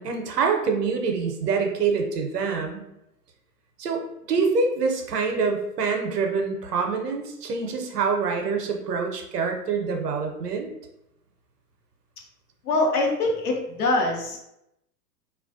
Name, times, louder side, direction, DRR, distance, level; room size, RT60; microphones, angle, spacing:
voice 1, 0.0-2.8 3.8-10.7, right 5 dB, 75° right, 3 dB, 0.7 m, -26 dB
voice 2, 12.6-14.4, left 2 dB, 65° left, 0 dB, 0.8 m, -23 dB
2.3 x 2.2 x 2.5 m, 0.83 s
figure-of-eight pair, 105°, 48 cm